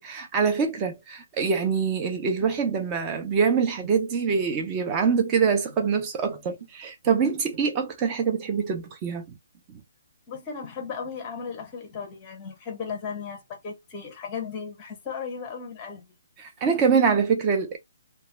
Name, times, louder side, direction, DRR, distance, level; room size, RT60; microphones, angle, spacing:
voice 1, 0.0-9.4 9.7-9.8 16.4-17.8, right 6 dB, 15° right, 0.5 m, -24 dB
sound 1, 2.1-6.7 7.0-7.8, right 5 dB, 60° right, 1.1 m, -48 dB
voice 2, 10.3-16.1, left 6 dB, 15° left, 0.7 m, -36 dB
2.2 x 2.1 x 3.2 m
hypercardioid pair, 175°, 0 cm